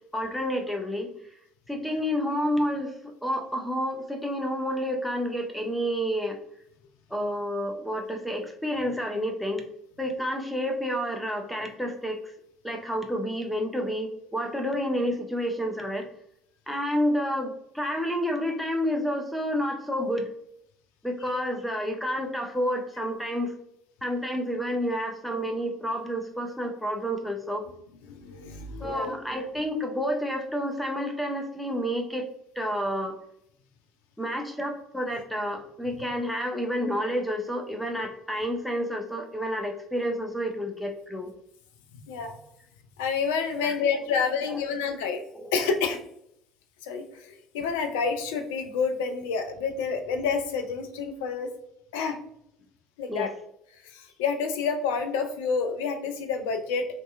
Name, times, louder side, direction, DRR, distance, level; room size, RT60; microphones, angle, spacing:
voice 1, 0.1-1.1 1.7-6.4 7.1-9.6 10.0-12.3 12.6-16.0 16.7-20.3 21.0-23.5 24.0-27.7 28.8-32.3 32.6-33.2 34.2-41.3 43.5-43.8 44.4-44.6 45.4-45.5 53.1-53.3, equal, 5° left, 3 dB, 0.5 m, -29 dB
voice 2, 28.1-29.1 42.1-42.4 43.0-45.2 45.5-46.0 46.8-51.5 51.9-52.2 53.0-53.3 53.8-56.9, left 5 dB, 70° left, 5 dB, 0.3 m, -28 dB
2.6 x 2.2 x 2.3 m, 0.74 s
figure-of-eight pair, 55°, 0 cm